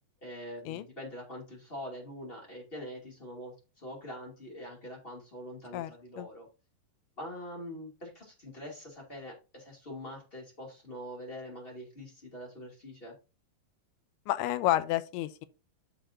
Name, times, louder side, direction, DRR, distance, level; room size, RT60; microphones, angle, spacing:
voice 1, 0.2-6.5 7.2-13.2, equal, 20° left, 1.8 m, -44 dB
voice 2, 14.3-15.5, left 14 dB, 90° left, 2.6 m, -30 dB
7.5 x 6.9 x 2.6 m
omnidirectional pair, 4.5 m